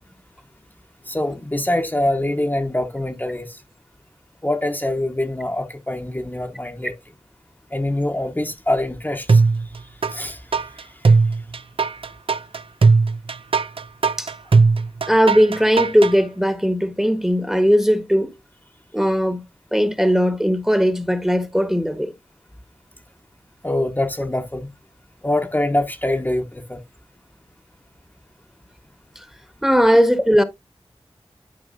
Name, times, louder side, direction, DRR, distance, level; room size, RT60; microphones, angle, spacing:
voice 1, 1.0-3.6 4.4-6.9 7.7-9.4 9.8-10.4 10.7-11.2 23.6-24.7 25.2-26.8, left 1 dB, 20° left, 1.1 m, -24 dB
sound 1, 9.3-10.1 10.5-16.1, right 4 dB, 65° right, 0.7 m, -17 dB
voice 2, 15.1-18.3 18.9-19.4 19.7-22.1 29.6-30.4, equal, 5° right, 1.3 m, -18 dB
12.5 x 4.9 x 2.6 m
wide cardioid pair, 50°, 10 cm